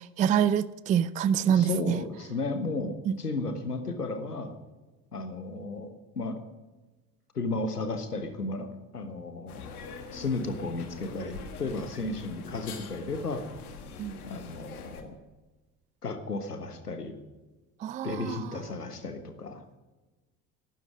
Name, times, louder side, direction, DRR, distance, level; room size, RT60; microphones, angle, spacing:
voice 1, 0.0-2.0 3.1-3.2 14.0-14.2 17.8-18.4, right 9 dB, 20° right, 18 dB, 0.4 m, -26 dB
voice 2, 1.5-4.5 5.1-6.4 7.3-9.6 10.1-13.4 14.2-15.1 16.0-17.1 18.0-19.6, left 3 dB, 85° left, 9 dB, 1.3 m, -34 dB
sound 1, 9.5-15.0, left 5 dB, 70° left, 1.7 m, -44 dB
13.5 x 12.5 x 6.2 m, 1.2 s
figure-of-eight pair, 60°, 45 cm